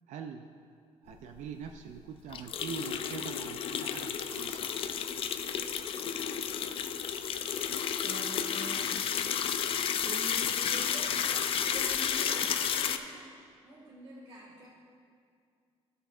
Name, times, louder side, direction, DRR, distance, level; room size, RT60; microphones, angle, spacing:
voice 1, 0.1-0.5 1.0-4.6, right 6 dB, 85° right, 5 dB, 0.4 m, -43 dB
sound 1, 1.4-1.5 1.7-1.8 2.3-13.0, left 8 dB, 50° left, 0.4 m, -32 dB
voice 2, 8.0-9.0 10.0-13.3 13.6-14.7, right 2 dB, 50° right, -5 dB, 1.7 m, -46 dB
15.0 x 7.8 x 2.4 m, 2.3 s
cardioid pair, 150°, 12 cm